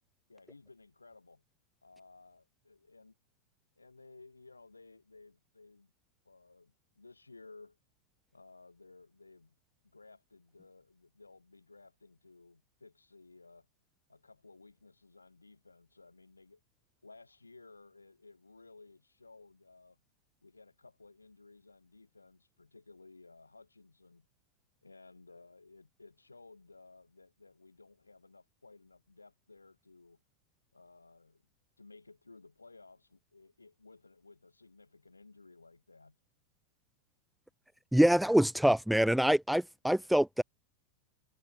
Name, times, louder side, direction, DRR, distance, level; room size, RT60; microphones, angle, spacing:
voice 1, 0.3-1.4 1.8-3.1 3.8-5.9 6.2-7.8 8.3-9.6 9.8-13.7 14.1-16.6 17.0-20.0 20.4-24.3 24.8-30.2 30.7-31.4 31.8-36.2, left 3 dB, 80° left, 7.4 m, -57 dB
voice 2, 37.9-40.4, right 1 dB, ahead, 0.8 m, -25 dB
figure-of-eight pair, 90°, 0 cm